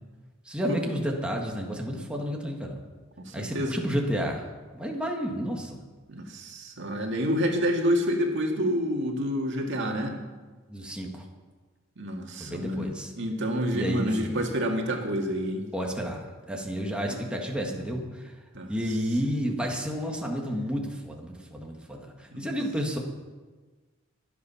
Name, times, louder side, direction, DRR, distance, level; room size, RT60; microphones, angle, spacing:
voice 1, 0.5-2.8 3.3-4.5 4.7-5.8 10.7-11.3 12.4-13.1 13.7-14.4 15.7-16.2 16.5-18.3 18.7-23.0, equal, 5° right, 0 dB, 1.8 m, -31 dB
voice 2, 3.2-3.7 6.1-10.2 12.0-15.7 17.1-17.2 18.5-18.7 22.3-22.5, equal, 65° right, 2 dB, 2.1 m, -28 dB
23.5 x 8.5 x 5.8 m, 1.3 s
head